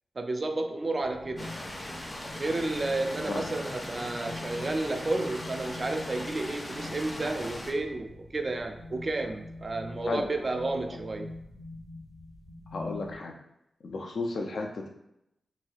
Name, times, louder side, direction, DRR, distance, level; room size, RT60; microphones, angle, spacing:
voice 1, 0.2-1.5 2.4-11.3, right 2 dB, 45° right, 5 dB, 0.3 m, -31 dB
sound 1, 1.0-13.2, left 2 dB, 80° right, 1.4 m, -45 dB
sound 2, 1.4-7.7, left 1 dB, 30° left, 0.6 m, -39 dB
voice 2, 12.7-13.3 13.8-14.9, left 3 dB, 75° left, 2 dB, 0.4 m, -33 dB
3.2 x 2.3 x 2.5 m, 0.83 s
cardioid pair, 60°, 0 cm